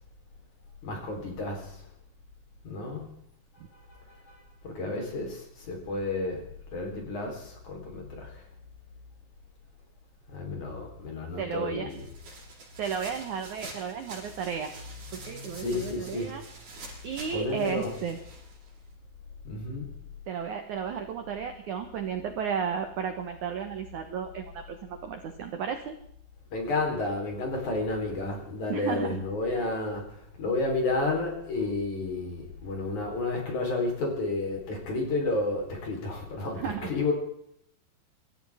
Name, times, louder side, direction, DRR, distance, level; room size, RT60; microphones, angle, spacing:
voice 1, 0.8-1.8 2.6-3.1 3.9-4.4 4.6-6.4 6.7-8.4 10.3-12.0 15.2-16.3 17.3-17.9 19.4-20.0 26.5-37.1, left 2 dB, 45° left, 1 dB, 5.0 m, -31 dB
voice 2, 11.4-11.9 12.8-14.7 15.1-16.4 17.0-18.2 20.3-25.9 28.7-29.7 36.5-36.9, right 7 dB, 75° right, 6 dB, 1.8 m, -33 dB
sound 1, 11.9-18.9, right 3 dB, 55° right, 8.1 m, -47 dB
26.5 x 14.0 x 3.6 m, 0.72 s
omnidirectional pair, 5.3 m